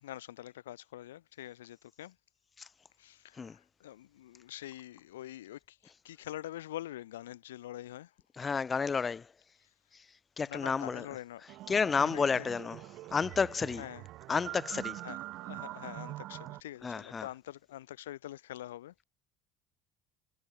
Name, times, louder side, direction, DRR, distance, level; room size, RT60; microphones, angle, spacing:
voice 1, 0.0-2.1 3.0-5.8 6.0-8.1 10.5-11.4 12.1-12.5 13.8-14.0 15.0-19.0, left 13 dB, 90° left, 0.6 m, -45 dB
voice 2, 8.4-9.3 10.4-11.1 11.7-12.8 13.1-13.9 14.3-15.0 16.8-17.3, left 5 dB, 30° left, 0.3 m, -31 dB
sound 1, 11.5-16.6, right 16 dB, 60° right, 0.5 m, -44 dB
hypercardioid pair, 80°, 0 cm